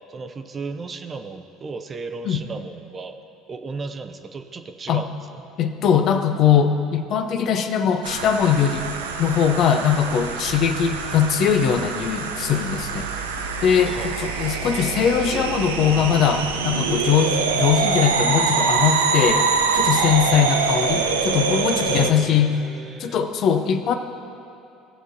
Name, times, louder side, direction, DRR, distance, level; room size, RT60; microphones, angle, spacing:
voice 1, 0.1-3.2 3.5-5.1 13.8-14.3 20.3-20.5 22.0-23.2, right 4 dB, 35° right, 7 dB, 0.6 m, -35 dB
voice 2, 5.6-8.9 9.2-13.1 13.6-19.5 19.7-22.6 23.0-24.0, left 8 dB, 55° left, 7 dB, 0.6 m, -21 dB
sound 1, 8.0-22.1, right 5 dB, 90° right, 0.5 m, -24 dB
sound 2, 10.4-16.1, right 6 dB, 35° left, 1.5 m, -38 dB
17.0 x 6.1 x 2.7 m, 2.7 s
hypercardioid pair, 65°, 0 cm